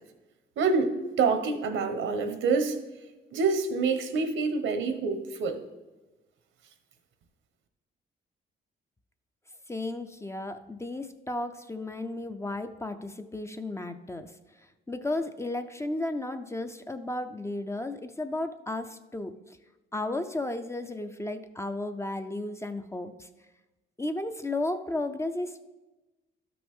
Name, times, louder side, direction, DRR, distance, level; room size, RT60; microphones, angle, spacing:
voice 1, 0.6-2.8 3.3-5.6, right 4 dB, 80° right, 8 dB, 1.1 m, -27 dB
voice 2, 9.7-14.3 14.9-19.3 19.9-23.1 24.0-25.6, left 2 dB, 15° left, 8 dB, 0.5 m, -34 dB
12.5 x 5.9 x 3.6 m, 1.1 s
cardioid pair, 90°, 20 cm